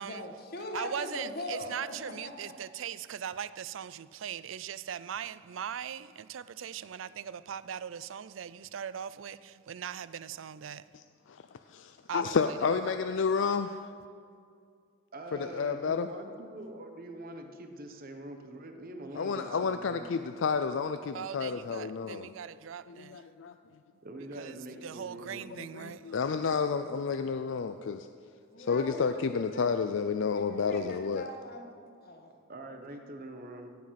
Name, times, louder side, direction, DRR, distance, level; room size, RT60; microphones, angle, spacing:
voice 1, 0.0-2.5 28.5-29.2 29.5-29.6 30.3-31.7 32.0-32.3, left 2 dB, 55° left, 1.6 m, -41 dB
voice 2, 0.7-10.8 12.1-12.3 21.1-23.2 24.4-24.5 24.8-26.1, right 8 dB, 80° right, 0.4 m, -40 dB
voice 3, 10.9-13.8 15.3-16.1 19.2-22.4 22.9-23.5 25.6-28.1 28.6-31.3, left 5 dB, 70° left, 0.4 m, -31 dB
voice 4, 15.1-20.2 24.0-25.5 32.5-33.7, right 1 dB, 50° right, 1.2 m, -44 dB
17.0 x 7.5 x 5.8 m
head